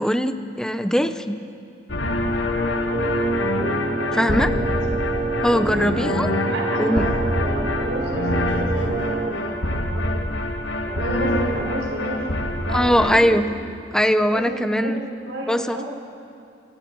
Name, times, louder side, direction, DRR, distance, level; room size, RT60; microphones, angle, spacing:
voice 1, 0.0-1.4 4.1-4.5 5.4-6.3 6.8-7.1 12.7-13.5 13.9-15.0 15.5-15.8, equal, 5° left, 9 dB, 0.9 m, -20 dB
sound 1, 1.9-13.2, left 1 dB, 80° left, 1.7 m, -25 dB
sound 2, 2.9-9.3, right 3 dB, 35° right, 0.9 m, -27 dB
voice 2, 3.8-4.7 5.7-6.1 6.4-10.2 10.8-12.3 12.6-13.3 14.3-15.8, right 1 dB, 85° right, -2 dB, 5.0 m, -31 dB
29.5 x 24.5 x 4.8 m, 2.5 s
head